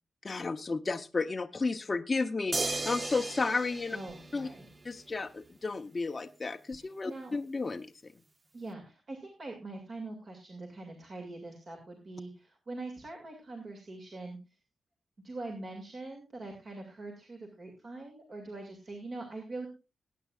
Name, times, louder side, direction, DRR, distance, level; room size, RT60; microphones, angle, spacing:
voice 1, 0.2-4.0 4.3-4.5 4.8-7.9, left 3 dB, 30° left, 5 dB, 0.7 m, -32 dB
sound 1, 2.5-5.0 6.7-6.8, right 2 dB, 25° right, 0.8 m, -36 dB
voice 2, 3.9-4.7 6.8-7.3 8.5-14.4 15.2-19.7, right 2 dB, 40° right, 2 dB, 2.3 m, -43 dB
20.5 x 9.2 x 2.4 m, 0.28 s
wide cardioid pair, 155°, 0 cm